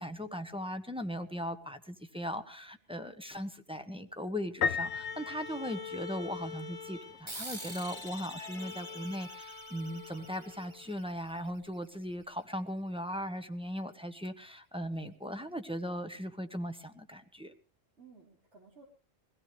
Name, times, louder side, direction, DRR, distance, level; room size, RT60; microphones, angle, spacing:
voice 1, 0.0-17.5, equal, 5° right, 6 dB, 1.2 m, -38 dB
Piano, 4.6-6.4, left 6 dB, 75° left, 1.3 m, -34 dB
Bowed string instrument, 4.6-10.9, left 6 dB, 50° left, 1.5 m, -46 dB
sound 1, 7.3-12.2, right 2 dB, 25° right, 1.7 m, -48 dB
voice 2, 8.3-9.0 18.0-18.8, right 3 dB, 85° right, -2 dB, 5.4 m, -57 dB
23.0 x 17.0 x 3.4 m, 0.36 s
omnidirectional pair, 1.2 m